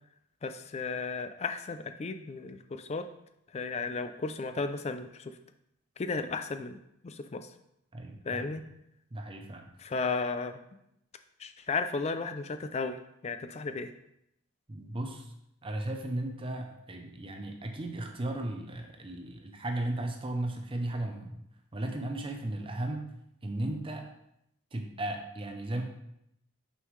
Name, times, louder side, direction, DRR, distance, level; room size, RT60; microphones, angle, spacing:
voice 1, 0.4-3.1 3.5-5.3 6.0-6.8 7.0-7.5 8.3-8.6 9.8-10.6 11.4-13.9, left 4 dB, 30° left, 9 dB, 0.3 m, -34 dB
voice 2, 7.9-8.5 9.1-9.7 14.7-15.3 15.6-21.3 21.7-23.0 23.4-24.0 24.7-25.8, right 1 dB, 25° right, 4 dB, 0.6 m, -35 dB
6.2 x 5.6 x 3.2 m, 0.79 s
head